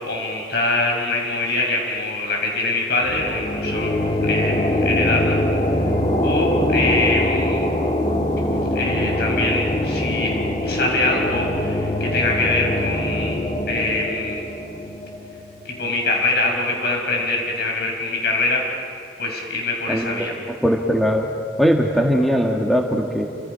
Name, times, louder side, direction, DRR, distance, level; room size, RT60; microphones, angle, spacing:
voice 1, 0.0-3.9 4.2-5.4 6.2-7.7 8.7-10.3 10.6-13.3 13.7-14.5 15.6-18.9 19.2-20.3, left 2 dB, 65° left, 0 dB, 6.8 m, -23 dB
sound 1, 3.0-16.4, left 1 dB, 35° left, 2.3 m, -23 dB
voice 2, 20.5-21.3 21.6-23.2, equal, ahead, 0 dB, 1.8 m, -19 dB
29.5 x 28.0 x 5.8 m, 2.3 s
head